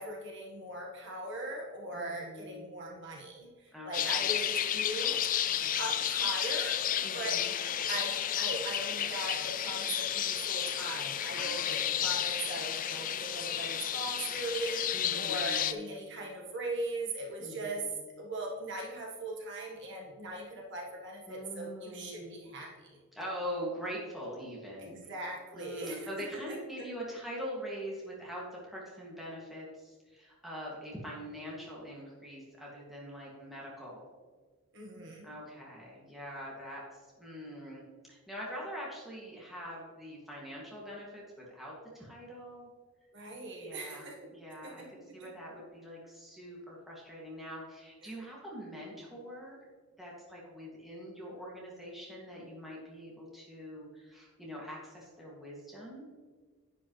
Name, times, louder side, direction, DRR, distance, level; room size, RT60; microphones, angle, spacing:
voice 1, 0.0-5.2 5.8-7.4 7.9-17.8 18.2-23.0 24.8-26.1 26.5-26.9 34.7-35.3 43.1-44.3 44.6-45.3 48.0-48.1, right 2 dB, 55° right, -1 dB, 1.6 m, -40 dB
voice 2, 1.9-2.7 3.7-4.3 5.1-5.8 7.0-7.5 11.3-12.1 14.9-15.9 17.4-18.0 21.3-22.5 23.1-25.1 25.5-34.0 35.2-36.8 37.2-37.8 38.1-41.2 41.5-42.7 43.5-49.6 50.0-56.0, equal, ahead, -5 dB, 2.3 m, -43 dB
sound 1, 3.9-15.7, left 10 dB, 35° left, 0.4 m, -32 dB
10.5 x 9.2 x 3.3 m, 1.5 s
head